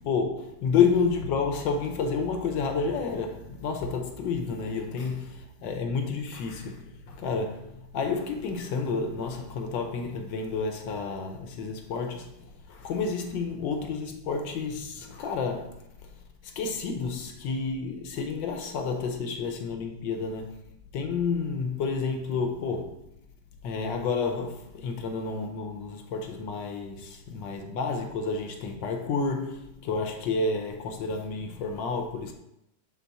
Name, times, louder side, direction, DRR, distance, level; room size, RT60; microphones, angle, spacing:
voice 1, 0.0-15.8 16.4-20.6 20.9-23.0 23.6-32.3, left 5 dB, 70° left, 1.3 m, -30 dB
7.3 x 3.5 x 4.0 m
omnidirectional pair, 2.3 m